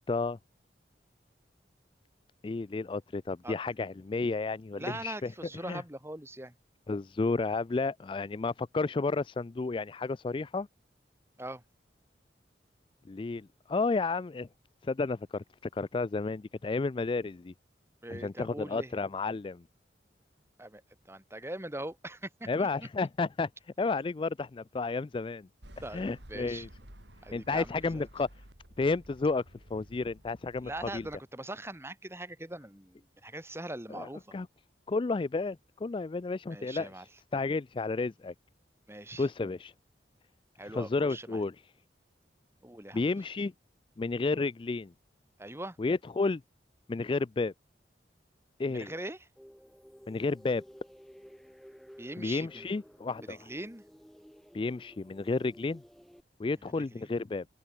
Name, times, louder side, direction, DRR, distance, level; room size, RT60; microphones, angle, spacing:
voice 1, 0.1-0.4 2.4-5.3 5.6-5.8 6.9-10.7 13.1-14.5 14.8-15.4 15.7-17.5 18.1-19.6 22.5-23.5 23.8-25.5 25.9-26.7 27.3-28.3 28.8-29.4 29.7-31.1 33.9-34.1 34.3-34.5 34.9-36.9 37.3-38.3 39.2-39.7 40.7-41.5 42.9-43.5 44.0-44.9 45.8-46.4 46.9-47.5 48.6-48.9 50.1-50.6 52.2-53.4 54.5-55.8 56.4-57.4, left 3 dB, 30° left, 0.3 m, -31 dB
voice 2, 4.8-6.5 11.4-11.6 18.0-18.9 20.6-20.8 21.1-22.7 25.8-26.7 27.2-28.0 30.6-34.3 36.5-37.0 38.9-39.3 40.6-41.4 42.6-43.1 45.4-45.8 48.7-49.3 52.0-52.7 53.2-53.8 56.7-57.1, right 1 dB, 15° right, 2.6 m, -42 dB
sound 1, 25.6-31.2, equal, 80° right, 7.0 m, -53 dB
sound 2, 49.4-56.2, equal, ahead, 4.0 m, -54 dB
open air
head